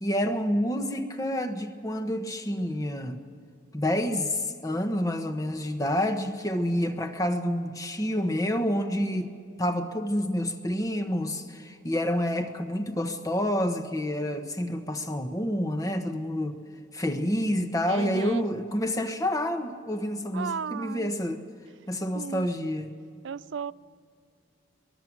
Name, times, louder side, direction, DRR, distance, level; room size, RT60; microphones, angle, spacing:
voice 1, 0.0-3.2 3.7-16.6 16.9-21.4 21.9-22.9, equal, 15° left, 7 dB, 1.2 m, -28 dB
voice 2, 17.9-18.4 20.3-21.1 22.1-22.5 23.2-23.7, right 6 dB, 70° right, 17 dB, 0.4 m, -34 dB
23.5 x 20.0 x 6.2 m, 2.4 s
head